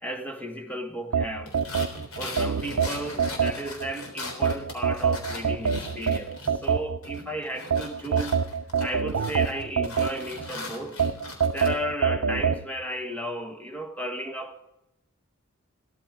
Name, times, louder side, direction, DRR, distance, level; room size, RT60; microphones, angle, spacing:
voice 1, 0.0-1.6 2.2-8.4 8.8-11.0 11.5-14.6, equal, 5° left, 1.3 m, -34 dB
sound 1, 1.1-3.9 4.4-7.2 7.7-10.5 11.0-12.6, right 6 dB, 85° right, 0.6 m, -25 dB
sound 2, 1.5-6.7 7.0-11.7, left 2 dB, 75° left, 3.6 m, -39 dB
16.5 x 13.0 x 5.0 m
head